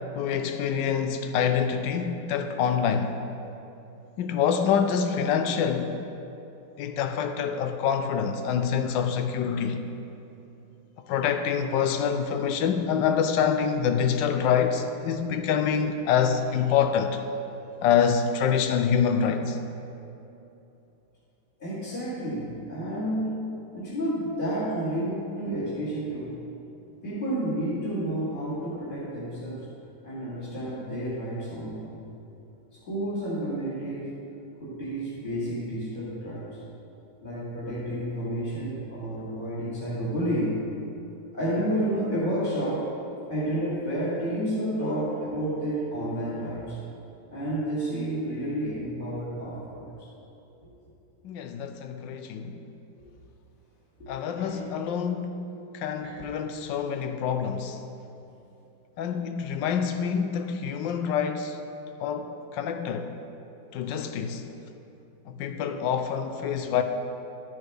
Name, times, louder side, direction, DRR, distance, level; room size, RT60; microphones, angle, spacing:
voice 1, 0.1-3.2 4.2-6.0 6.8-9.8 11.1-17.2 17.8-19.6 51.2-52.6 54.1-57.8 59.0-61.6 62.0-63.1 63.7-64.4 65.3-66.8, left 7 dB, 75° left, 1.2 m, -26 dB
voice 2, 21.6-23.4 23.7-26.4 27.0-29.7 30.0-32.0 32.8-34.2 34.6-36.6 37.2-40.6 41.3-42.9 43.3-46.8 47.3-50.1 54.0-54.6 56.0-56.1, right 1 dB, 25° left, 2.2 m, -30 dB
12.5 x 9.0 x 3.4 m
omnidirectional pair, 2.2 m